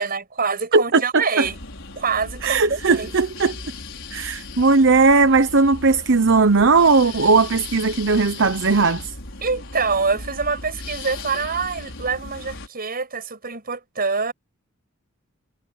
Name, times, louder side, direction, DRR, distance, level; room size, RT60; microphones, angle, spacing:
voice 1, 0.0-1.6 2.0-3.1 9.4-14.3, right 4 dB, 45° right, 6.5 m, -25 dB
voice 2, 0.7-1.5 2.4-3.5 4.1-9.1, right 4 dB, 60° right, 1.0 m, -17 dB
sound 1, 1.4-12.7, left 3 dB, 65° left, 5.8 m, -37 dB
head